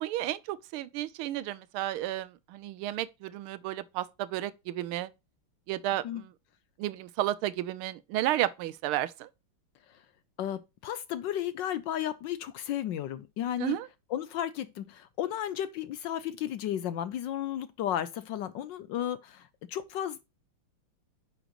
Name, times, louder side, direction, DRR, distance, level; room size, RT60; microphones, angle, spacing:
voice 1, 0.0-5.1 5.7-6.3 6.8-9.3 13.6-13.9, right 14 dB, 80° right, 1.5 m, -32 dB
voice 2, 10.4-13.8 14.1-19.4 19.7-20.2, left 11 dB, 70° left, 1.1 m, -33 dB
9.9 x 6.3 x 3.0 m
omnidirectional pair, 2.3 m